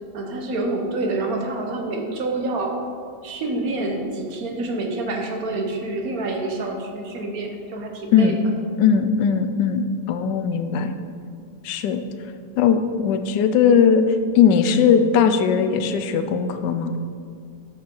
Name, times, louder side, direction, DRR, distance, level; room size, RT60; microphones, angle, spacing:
voice 1, 0.1-2.8 3.2-8.3, right 2 dB, 60° right, 2 dB, 1.3 m, -27 dB
voice 2, 8.8-10.9 11.6-12.0 12.6-16.9, left 7 dB, 90° left, 9 dB, 1.3 m, -19 dB
8.3 x 6.4 x 4.4 m, 2.2 s
omnidirectional pair, 1.8 m